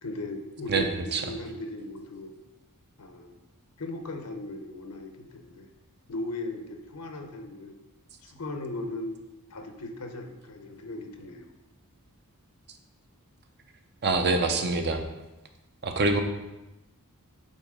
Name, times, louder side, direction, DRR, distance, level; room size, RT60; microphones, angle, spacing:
voice 1, 0.0-0.9 1.2-2.3 3.0-3.4 3.8-5.7 6.1-7.8 8.2-9.2 9.5-11.5, left 2 dB, 90° left, 5 dB, 0.9 m, -37 dB
voice 2, 0.7-1.2 14.0-15.0 15.8-16.2, right 3 dB, 50° right, 6 dB, 0.7 m, -25 dB
8.0 x 4.0 x 3.7 m, 1.0 s
head